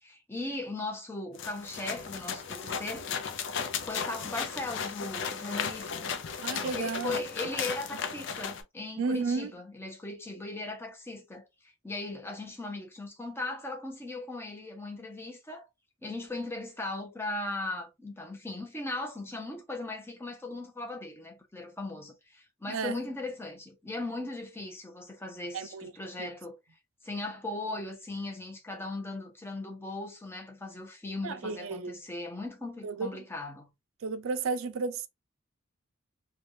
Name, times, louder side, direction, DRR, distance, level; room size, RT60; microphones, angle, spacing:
voice 1, 0.0-3.1 3.8-6.1 6.6-15.7 16.0-26.6 27.0-33.7, left 2 dB, 10° left, 0.7 m, -38 dB
sound 1, 1.3-8.6, left 6 dB, 60° left, 0.5 m, -35 dB
voice 2, 6.4-7.2 9.0-9.5 22.7-22.9 25.5-25.9 26.2-26.3 31.2-32.0 32.8-33.2 34.0-35.1, right 4 dB, 75° right, 0.4 m, -33 dB
3.3 x 2.3 x 2.6 m
head